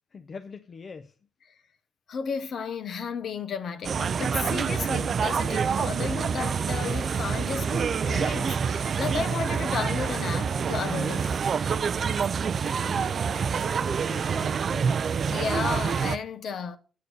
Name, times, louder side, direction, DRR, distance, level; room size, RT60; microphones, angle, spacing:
voice 1, 0.1-1.2 12.4-14.9, left 5 dB, 40° left, 0.6 m, -43 dB
voice 2, 2.1-11.4 15.3-16.8, left 6 dB, 60° left, 0.9 m, -33 dB
sound 1, 3.8-16.2, right 6 dB, 45° right, 0.4 m, -27 dB
8.4 x 6.7 x 6.6 m
cardioid pair, 130°, 0 cm